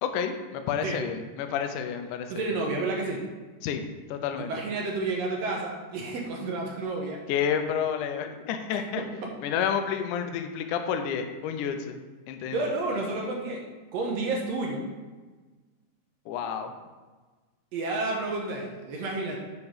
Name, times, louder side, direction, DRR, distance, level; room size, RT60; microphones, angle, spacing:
voice 1, 0.0-2.5 3.6-3.8 4.1-4.5 7.3-9.0 9.4-12.0 12.3-12.6 16.3-16.7, left 8 dB, 80° left, 7 dB, 2.1 m, -30 dB
voice 2, 2.3-3.2 4.5-7.2 8.7-9.3 12.5-13.7 13.9-14.8 17.7-19.4, right 3 dB, 65° right, 0 dB, 1.7 m, -31 dB
7.2 x 4.7 x 4.9 m, 1.3 s
omnidirectional pair, 3.8 m